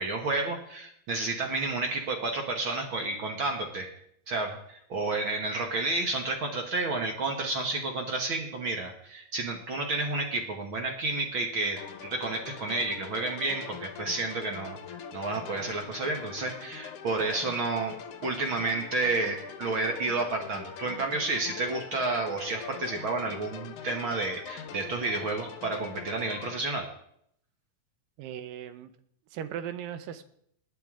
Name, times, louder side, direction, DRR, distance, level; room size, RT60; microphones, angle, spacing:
voice 1, 0.0-3.9 4.3-17.9 18.2-26.9, right 3 dB, 55° right, 2 dB, 1.5 m, -31 dB
sound 1, 11.8-26.5, left 7 dB, 70° left, 2.6 m, -43 dB
voice 2, 28.2-28.9 29.3-30.2, right 9 dB, 90° right, 11 dB, 2.5 m, -37 dB
20.0 x 10.5 x 3.7 m, 0.70 s
omnidirectional pair, 3.8 m